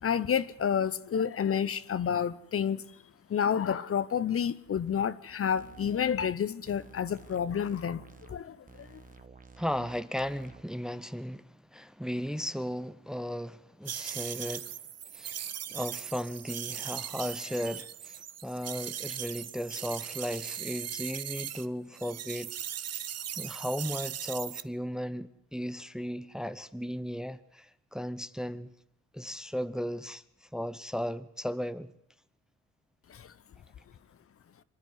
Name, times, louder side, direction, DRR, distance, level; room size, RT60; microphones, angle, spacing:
voice 1, 0.0-2.8 3.3-9.0 33.1-33.3, left 8 dB, 50° left, 0.8 m, -30 dB
sound 1, 5.6-6.3 6.7-8.4 8.7-10.6, right 5 dB, 30° right, 1.2 m, -52 dB
voice 2, 9.6-14.7 15.1-23.1 23.4-28.7 29.1-31.9, equal, ahead, 0.7 m, -36 dB
sound 2, 13.9-21.7 21.9-24.6, right 10 dB, 60° right, 0.8 m, -39 dB
25.5 x 11.0 x 9.5 m
cardioid pair, 90°, 29 cm